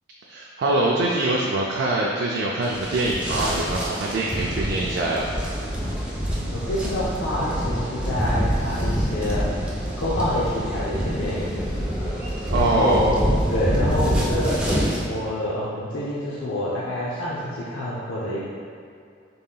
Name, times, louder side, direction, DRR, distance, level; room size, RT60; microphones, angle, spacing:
voice 1, 0.2-5.3 12.5-13.1, right 2 dB, 65° right, -3 dB, 0.4 m, -23 dB
sound 1, 2.6-15.0, equal, 5° right, 0.6 m, -26 dB
sound 2, 4.2-12.7, equal, 20° left, 1.4 m, -39 dB
voice 2, 6.5-9.4 10.0-11.6 12.6-13.2 13.5-14.6 15.1-18.4, left 1 dB, 75° left, -7 dB, 0.6 m, -27 dB
5.4 x 3.7 x 2.2 m, 2.4 s
head